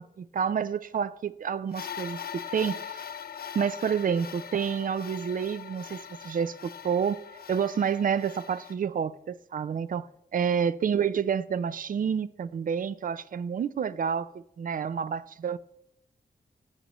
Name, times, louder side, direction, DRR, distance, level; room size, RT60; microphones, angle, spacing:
voice 1, 0.0-3.0 3.5-7.2 7.5-15.6, right 7 dB, 60° right, 0.4 m, -29 dB
sound 1, 1.7-8.7, left 8 dB, 75° left, 0.5 m, -41 dB
20.5 x 7.4 x 3.0 m
wide cardioid pair, 165°, 16 cm